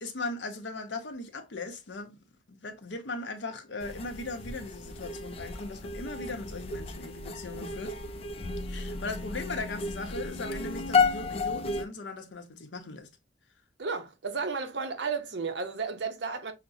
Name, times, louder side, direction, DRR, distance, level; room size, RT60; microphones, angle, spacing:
voice 1, 0.0-2.2 2.5-7.9 8.7-13.1, left 3 dB, 90° left, 0.8 m, -38 dB
sound 1, 3.8-11.8, left 4 dB, 35° left, 0.3 m, -32 dB
voice 2, 13.8-16.5, right 4 dB, 75° right, 0.7 m, -33 dB
5.8 x 2.1 x 2.6 m
head